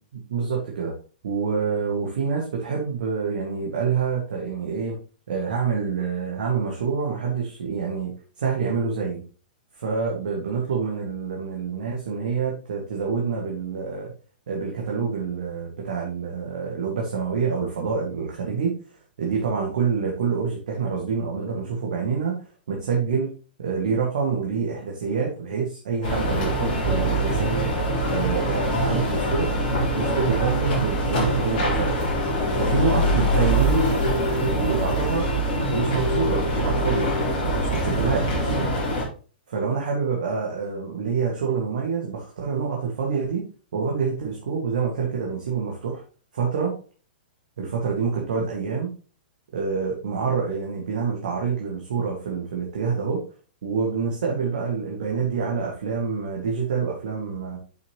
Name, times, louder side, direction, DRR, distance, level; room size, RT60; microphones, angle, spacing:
voice 1, 0.3-0.9 1.2-5.0 5.3-9.2 9.7-14.1 14.5-18.8 19.2-23.3 23.6-27.7 28.1-29.5 29.9-32.1 32.6-35.2 35.5-37.1 37.6-38.7 39.5-43.4 43.7-46.0 46.3-46.7 47.6-48.9 49.5-53.2 53.6-57.6, right 5 dB, 55° right, -1 dB, 2.1 m, -27 dB
sound 1, 26.0-39.0, equal, 40° left, 4.0 m, -24 dB
8.4 x 6.6 x 3.1 m, 0.37 s
figure-of-eight pair, 110°, 5 cm